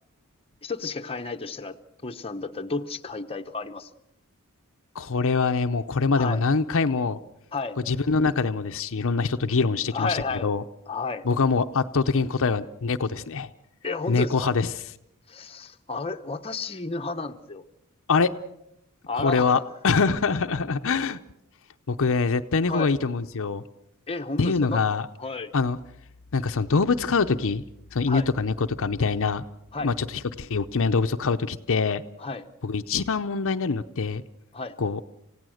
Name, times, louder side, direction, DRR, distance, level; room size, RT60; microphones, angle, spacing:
voice 1, 0.6-1.8 2.0-3.9 6.1-6.4 7.5-7.8 9.9-10.5 10.9-11.3 13.8-14.5 15.3-17.6 19.1-19.6 22.7-22.9 24.1-24.8 25.2-25.5 28.1-28.3 29.7-29.9 32.2-32.4 34.5-34.8, left 3 dB, 25° left, 6 dB, 0.9 m, -32 dB
voice 2, 4.9-7.2 7.9-10.6 11.2-13.5 14.1-14.8 18.1-18.3 19.1-21.2 21.9-23.6 24.4-25.1 25.5-25.8 26.3-27.6 27.9-29.4 29.8-32.0 32.6-34.2 34.8-35.0, left 4 dB, 65° left, 8 dB, 0.7 m, -24 dB
28.0 x 16.5 x 6.4 m, 0.80 s
head